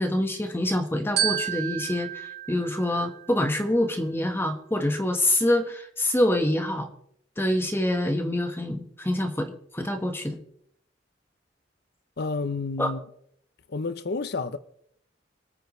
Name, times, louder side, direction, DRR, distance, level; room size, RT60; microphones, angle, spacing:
voice 1, 0.0-6.9 7.4-10.4 12.8-12.9, left 1 dB, 15° left, 1.4 m, -26 dB
Glockenspiel, 1.2-3.6, right 10 dB, 60° right, 4.7 m, -31 dB
voice 2, 12.2-13.0 13.7-14.6, left 3 dB, 60° left, 0.7 m, -30 dB
26.0 x 9.3 x 3.3 m
head